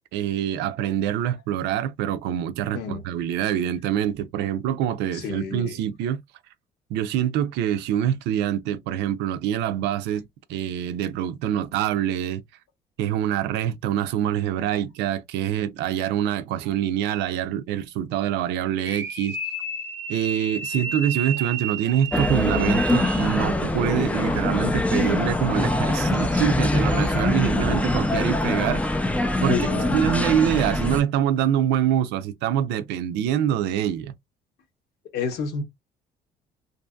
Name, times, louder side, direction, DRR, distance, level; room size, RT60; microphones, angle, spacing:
voice 1, 0.1-6.2 6.9-10.2 10.5-12.4 13.0-19.4 20.1-28.8 29.4-29.6 29.9-34.1, right 10 dB, 85° right, 0.5 m, -25 dB
voice 2, 5.1-5.7 20.7-20.9 24.3-24.8 25.8-26.3 29.5-30.0 35.1-35.6, left 6 dB, 75° left, 1.0 m, -31 dB
sound 1, 18.8-23.5, right 4 dB, 15° right, 0.8 m, -32 dB
sound 2, 22.1-31.0, left 1 dB, 10° left, 0.4 m, -23 dB
2.6 x 2.6 x 2.3 m
cardioid pair, 110°, 17 cm